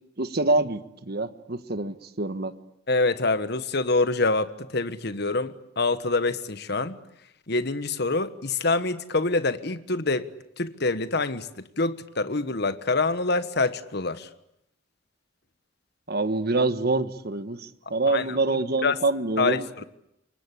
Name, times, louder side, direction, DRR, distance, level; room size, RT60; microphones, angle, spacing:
voice 1, 0.2-2.5 16.1-19.8, right 2 dB, 55° right, 1.4 m, -26 dB
voice 2, 2.9-7.0 7.5-10.3 10.6-14.3 18.1-18.2 18.8-19.0 19.4-19.8, left 3 dB, 60° left, 1.4 m, -26 dB
28.0 x 24.0 x 8.5 m
head